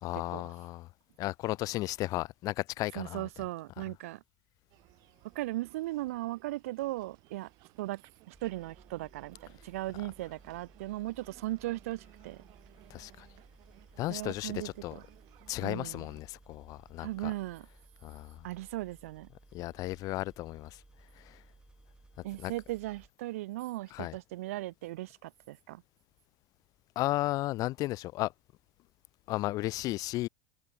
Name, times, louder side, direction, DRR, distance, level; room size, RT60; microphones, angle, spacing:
voice 1, 0.0-0.9 1.2-3.3 12.9-13.3 14.0-14.9 15.5-17.3 18.0-18.5 19.5-20.8 21.2-21.4 22.4-22.5 23.9-24.1 27.0-28.3 29.3-30.3, left 17 dB, 50° left, 0.7 m, -34 dB
voice 2, 2.9-4.2 5.3-7.5 7.8-8.0 8.3-12.4 14.1-15.0 15.6-16.1 17.0-17.7 18.4-19.3 22.2-25.8, right 17 dB, 80° right, 1.3 m, -37 dB
sound 1, 4.7-16.2, right 22 dB, 60° right, 7.5 m, -60 dB
sound 2, 8.3-23.1, right 2 dB, 10° right, 2.6 m, -59 dB
hypercardioid pair, 100°, 8 cm